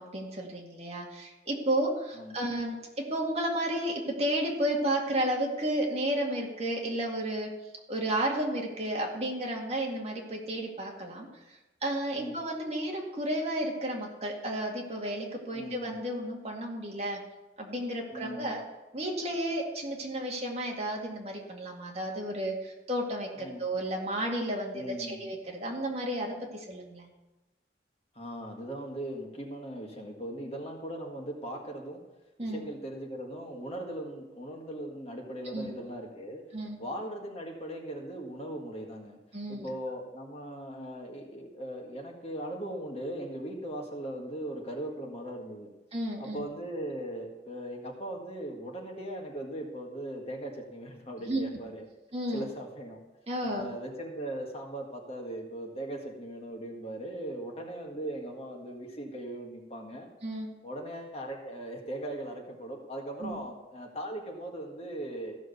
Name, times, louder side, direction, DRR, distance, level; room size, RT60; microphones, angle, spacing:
voice 1, 0.0-2.8 3.1-7.5 7.9-11.3 11.8-17.2 17.6-18.6 18.9-27.1 32.4-32.6 35.5-35.7 36.5-36.8 39.3-39.7 45.9-46.4 51.2-51.4 52.1-52.5 53.3-53.7 60.2-60.5 63.2-63.4, right 1 dB, 35° right, -1 dB, 2.1 m, -32 dB
voice 2, 2.1-2.5 12.1-12.4 15.5-16.0 18.1-18.6 23.4-23.6 24.7-25.2 28.1-32.0 32.4-36.4 36.8-39.2 39.5-45.7 46.2-51.9 52.3-53.0 53.4-60.1 60.6-65.4, right 1 dB, 35° left, 1 dB, 1.8 m, -39 dB
15.0 x 6.3 x 6.9 m, 1.0 s
head